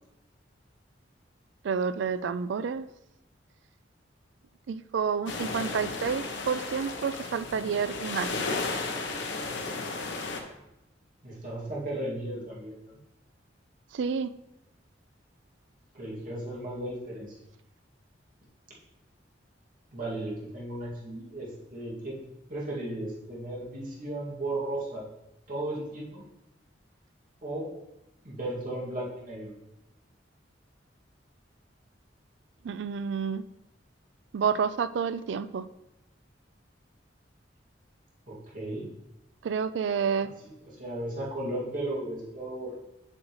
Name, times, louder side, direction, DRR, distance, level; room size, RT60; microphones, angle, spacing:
voice 1, 1.6-2.9 4.7-8.3 13.9-14.3 32.6-33.4 34.3-35.7 39.4-40.3, right 6 dB, 70° right, 13 dB, 0.3 m, -29 dB
sound 1, 5.3-10.4, left 3 dB, 75° left, 0.9 m, -34 dB
voice 2, 11.2-13.0 15.9-17.4 19.9-22.1 22.5-25.0 25.5-26.2 27.4-27.7 28.2-29.5 38.3-38.9 40.7-42.7, right 1 dB, 45° right, -6 dB, 2.2 m, -35 dB
7.4 x 6.3 x 3.1 m, 0.90 s
head